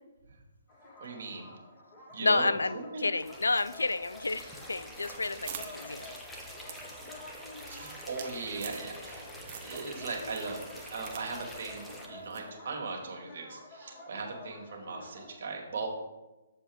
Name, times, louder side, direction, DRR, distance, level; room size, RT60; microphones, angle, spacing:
sound 1, 0.7-15.4, left 1 dB, 25° left, 2.3 m, -50 dB
voice 1, 1.0-1.5 2.1-3.1 7.7-9.3 9.6-15.9, right 4 dB, 60° right, 1 dB, 2.0 m, -39 dB
voice 2, 2.2-6.1, left 3 dB, 90° left, 16 dB, 0.4 m, -30 dB
sound 2, 3.2-12.1, equal, 5° left, 1.2 m, -47 dB
sound 3, 4.8-9.2 9.5-10.0 10.3-11.3 11.5-11.6 12.3-12.5, right 8 dB, 40° right, 0.9 m, -45 dB
7.4 x 6.8 x 3.6 m, 1.1 s
hypercardioid pair, 140°, 0 cm